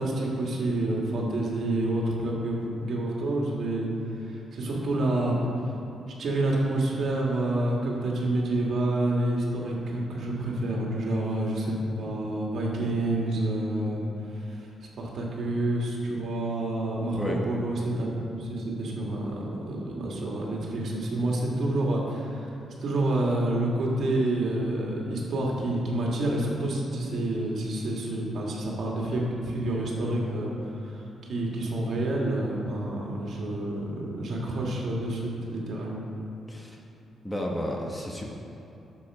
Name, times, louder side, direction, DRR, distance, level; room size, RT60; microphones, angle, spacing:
voice 1, 0.0-3.9 4.2-5.5 6.2-14.0 14.3-14.7 15.0-22.5 22.8-31.0 31.3-36.0, right 1 dB, 60° right, -2 dB, 2.2 m, -28 dB
voice 2, 36.5-36.8 37.2-38.2, left 1 dB, 15° left, -1 dB, 1.3 m, -32 dB
11.5 x 7.3 x 5.0 m, 3.0 s
cardioid pair, 110°, 0 cm